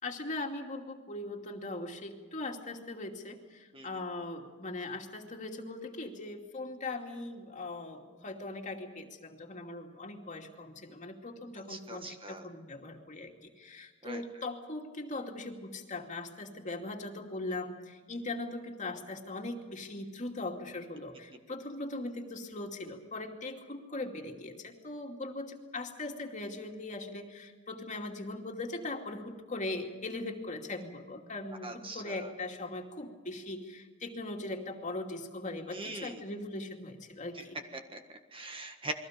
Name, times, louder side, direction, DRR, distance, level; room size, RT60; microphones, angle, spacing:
voice 1, 0.0-37.6, left 2 dB, 35° left, 2 dB, 2.6 m, -40 dB
voice 2, 11.7-12.5 14.0-14.2 31.6-32.3 35.7-36.2 37.4-37.5 37.7-38.9, right 2 dB, 25° right, 5 dB, 1.6 m, -42 dB
29.5 x 22.0 x 5.2 m, 1.4 s
head